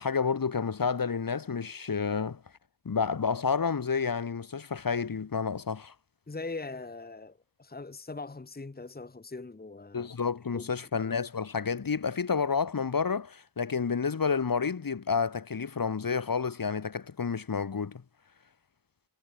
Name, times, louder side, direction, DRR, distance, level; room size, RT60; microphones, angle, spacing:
voice 1, 0.0-2.4 2.8-5.9 9.9-18.0, left 5 dB, 55° left, 2.7 m, -30 dB
voice 2, 6.3-10.1 10.5-10.9, left 3 dB, 25° left, 1.7 m, -41 dB
wide cardioid pair, 110°, 40 cm